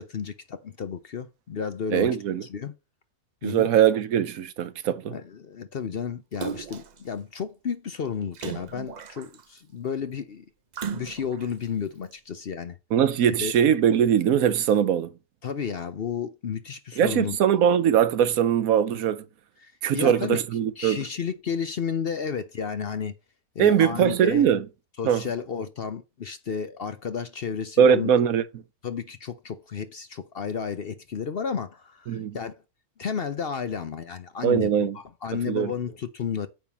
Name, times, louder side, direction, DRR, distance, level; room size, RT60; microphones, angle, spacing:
voice 1, 0.0-2.1 2.4-2.7 3.4-3.7 5.1-10.4 10.9-12.8 13.4-13.5 15.4-17.4 19.6-20.4 20.8-23.1 23.6-24.5 25.0-28.1 28.8-32.5 33.0-36.5, left 6 dB, 50° left, 0.8 m, -32 dB
voice 2, 1.9-2.4 3.4-5.1 12.9-15.1 17.0-19.2 19.8-21.0 23.6-24.6 25.0-25.2 27.8-28.4 32.1-32.4 34.4-35.0 35.5-35.7, right 9 dB, 75° right, 1.2 m, -21 dB
Splash splatter, 6.4-7.0 8.3-9.6 10.7-11.5 12.1-12.2, right 7 dB, 55° right, 0.4 m, -36 dB
9.2 x 3.6 x 7.0 m
omnidirectional pair, 1.5 m